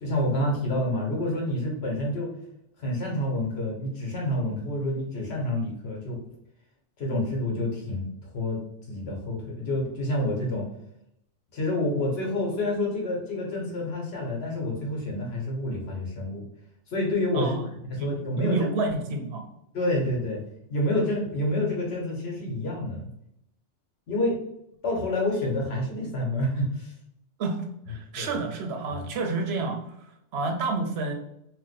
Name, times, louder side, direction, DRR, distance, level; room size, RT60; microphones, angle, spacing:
voice 1, 0.0-2.3 2.8-6.2 7.0-8.1 8.3-8.6 8.9-10.7 11.5-16.4 16.9-17.6 17.9-18.7 19.7-20.4 20.7-23.1 24.1-24.3 24.8-26.9 28.2-28.4 28.9-29.1, left 1 dB, 60° left, -2 dB, 1.0 m, -28 dB
voice 2, 17.3-17.7 18.0-19.5 27.4-29.8 30.3-31.1, right 3 dB, 65° right, 4 dB, 0.7 m, -29 dB
2.5 x 2.1 x 3.9 m, 0.78 s
omnidirectional pair, 1.3 m